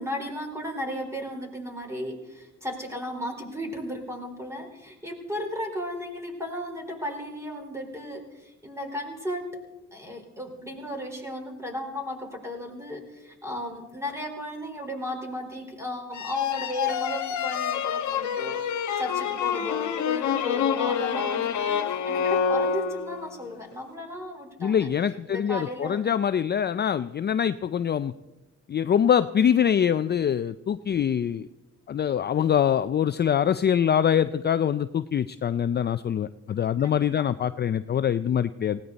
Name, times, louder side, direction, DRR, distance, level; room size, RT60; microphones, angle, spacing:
voice 1, 0.0-9.5 9.9-24.9 25.3-26.0 36.8-37.2, left 1 dB, 10° right, 2 dB, 4.5 m, -35 dB
sound 1, 16.1-23.3, left 7 dB, 70° left, 1.3 m, -27 dB
voice 2, 24.6-28.1 28.7-31.5 31.9-38.8, left 8 dB, 35° left, 12 dB, 0.4 m, -24 dB
19.0 x 17.5 x 4.1 m, 1.0 s
cardioid pair, 90°, 30 cm